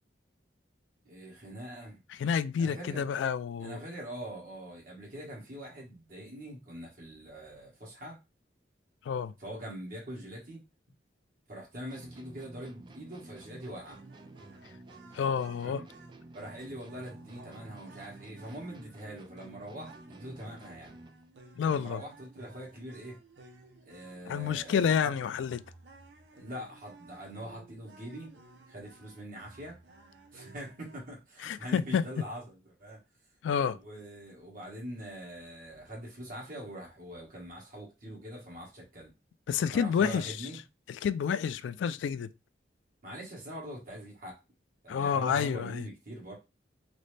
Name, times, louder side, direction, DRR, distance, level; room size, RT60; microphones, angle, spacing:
voice 1, 1.0-2.0 2.6-3.1 3.6-8.2 9.4-10.6 11.5-14.0 15.6-15.8 16.3-20.9 21.6-23.2 23.8-25.1 26.3-28.4 28.7-29.8 30.3-33.0 33.7-39.1 39.7-40.6 43.0-44.4 44.8-46.4, equal, 50° right, 1.4 m, -43 dB
voice 2, 2.1-3.8 9.1-9.3 15.1-15.8 21.6-22.0 24.3-25.6 31.4-32.0 33.4-33.8 39.5-40.4 40.9-42.3 44.9-45.9, left 7 dB, 85° left, 0.3 m, -29 dB
sound 1, 11.9-21.3, right 2 dB, 25° right, 0.3 m, -52 dB
sound 2, 13.8-31.0, right 2 dB, 65° right, 0.6 m, -56 dB
4.0 x 2.0 x 3.2 m
head